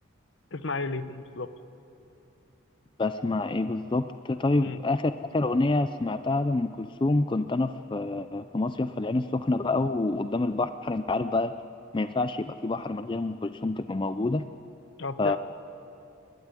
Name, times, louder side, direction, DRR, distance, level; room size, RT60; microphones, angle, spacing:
voice 1, 0.5-1.5 4.6-4.8 15.0-15.4, left 3 dB, 65° left, 12 dB, 0.9 m, -33 dB
voice 2, 3.0-11.5 11.9-14.4 15.2-15.4, left 2 dB, 25° left, 10 dB, 0.4 m, -27 dB
29.5 x 12.0 x 9.7 m, 2.8 s
head